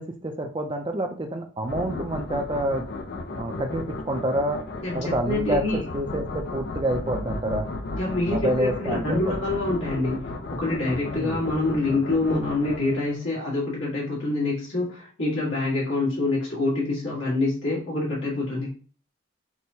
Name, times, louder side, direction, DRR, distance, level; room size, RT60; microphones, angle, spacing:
voice 1, 0.0-2.9 3.4-4.6 4.9-7.7 8.3-9.4 11.1-11.4, right 1 dB, 25° right, 4 dB, 0.5 m, -28 dB
sound 1, 1.6-13.3, left 2 dB, 50° left, 0.5 m, -34 dB
voice 2, 4.8-5.8 8.0-18.7, left 2 dB, 75° left, -5 dB, 1.6 m, -26 dB
6.0 x 2.2 x 2.7 m, 0.39 s
head